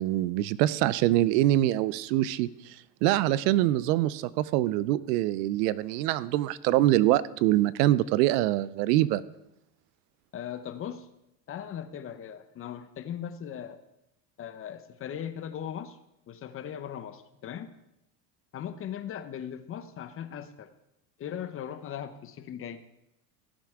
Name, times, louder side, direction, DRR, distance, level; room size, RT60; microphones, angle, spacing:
voice 1, 0.0-2.8 3.0-9.2, right 14 dB, 80° right, 18 dB, 0.7 m, -24 dB
voice 2, 10.3-11.1 11.5-13.8 14.4-16.0 16.3-17.7 18.5-20.7 21.2-22.8, left 9 dB, 30° left, 11 dB, 0.7 m, -38 dB
17.5 x 7.5 x 3.6 m, 0.87 s
supercardioid pair, 135°, 48 cm